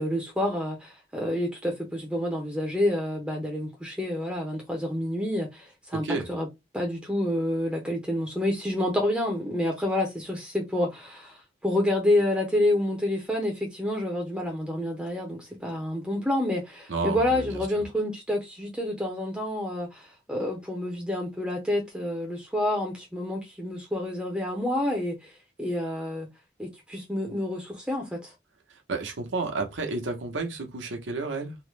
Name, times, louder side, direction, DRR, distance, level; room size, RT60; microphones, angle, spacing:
voice 1, 0.0-6.5 6.7-25.3 25.6-26.3 26.6-28.3, left 1 dB, 5° right, 0.5 m, -28 dB
voice 2, 5.9-6.3 16.9-17.6 28.7-31.6, right 3 dB, 85° right, 0.8 m, -31 dB
3.0 x 2.0 x 3.2 m
head